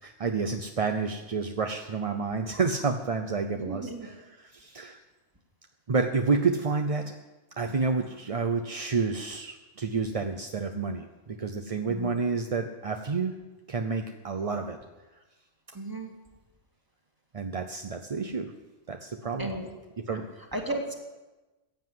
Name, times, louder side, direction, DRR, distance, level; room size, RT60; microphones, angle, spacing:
voice 1, 0.0-5.0 5.9-7.1 7.6-13.4 13.7-14.8 17.3-18.5 18.9-19.5 20.1-20.2, right 4 dB, 35° right, 5 dB, 0.6 m, -29 dB
voice 2, 3.5-4.1 11.9-12.2 15.7-16.1 19.4-19.7 20.1-20.2 20.5-20.9, right 1 dB, 15° right, 2 dB, 2.0 m, -35 dB
16.0 x 7.8 x 9.4 m, 1.2 s
omnidirectional pair, 1.3 m